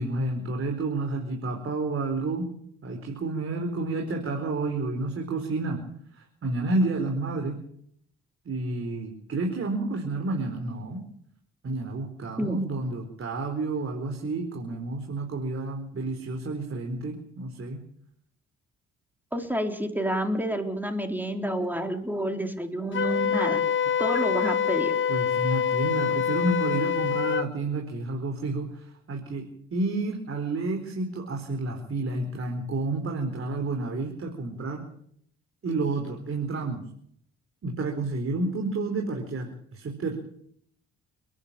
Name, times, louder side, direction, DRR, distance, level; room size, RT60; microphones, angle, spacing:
voice 1, 0.0-2.5 2.8-5.8 6.1-7.6 8.4-11.0 11.6-17.8 25.1-34.8 35.6-36.8 37.6-40.1, right 2 dB, 45° right, 2 dB, 4.6 m, -30 dB
voice 2, 19.3-23.6 24.0-24.9, right 1 dB, 5° right, 5 dB, 4.1 m, -29 dB
Wind instrument woodwind instrument, 22.9-27.5, left 8 dB, 40° left, 0.9 m, -25 dB
30.0 x 11.0 x 9.0 m, 0.68 s
cardioid pair, 90°, 30 cm